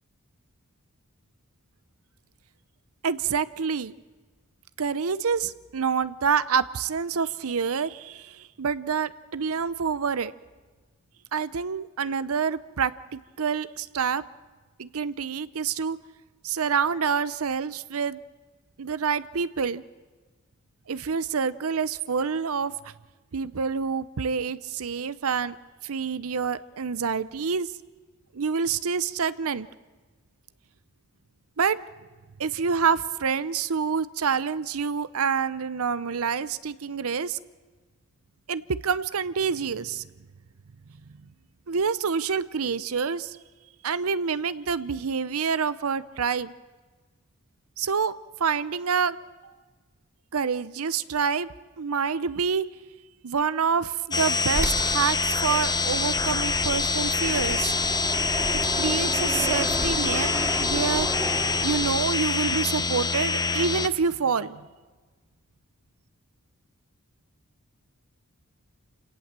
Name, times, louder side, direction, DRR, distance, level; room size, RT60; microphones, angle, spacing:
voice 1, 3.0-3.9 4.8-10.3 11.3-14.2 14.8-16.0 16.4-18.2 18.8-19.8 20.9-22.7 23.3-25.6 25.8-27.7 28.3-29.7 31.6-31.8 32.4-37.4 38.5-40.1 41.7-43.4 43.8-46.5 47.8-49.5 50.3-51.5 51.8-52.6 53.2-57.8 58.8-61.1 61.6-64.6, right 6 dB, 75° right, 15 dB, 0.7 m, -27 dB
sound 1, 54.1-63.9, left 4 dB, 20° left, 0.7 m, -26 dB
Fixed-wing aircraft airplane, 54.5-62.3, right 1 dB, 15° right, 2.2 m, -33 dB
28.5 x 18.0 x 7.5 m, 1.3 s
head